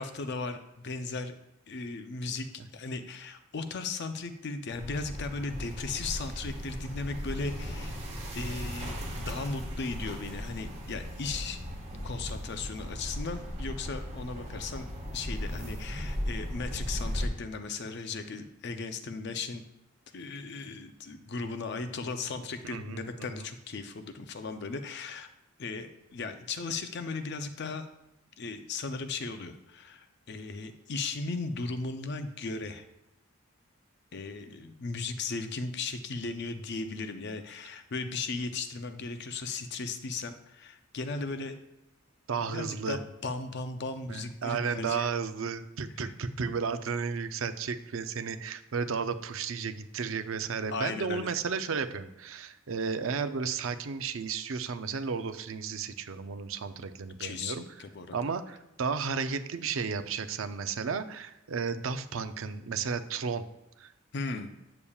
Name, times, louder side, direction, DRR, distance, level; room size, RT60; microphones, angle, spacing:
voice 1, 0.0-1.4 1.7-8.0 8.3-11.6 12.0-14.9 15.1-19.6 20.1-25.3 25.6-27.9 28.4-32.8 34.1-41.6 42.5-45.1 46.0-46.1 50.7-51.3 57.2-58.2 64.1-64.5, left 3 dB, 55° left, 8 dB, 0.5 m, -36 dB
sound 1, 4.7-17.3, equal, 30° right, 1.4 m, -37 dB
voice 2, 22.6-23.5 42.3-43.0 44.1-57.6 58.1-63.4 63.8-63.9, right 5 dB, 70° right, 10 dB, 0.5 m, -33 dB
8.4 x 6.9 x 2.4 m, 0.89 s
head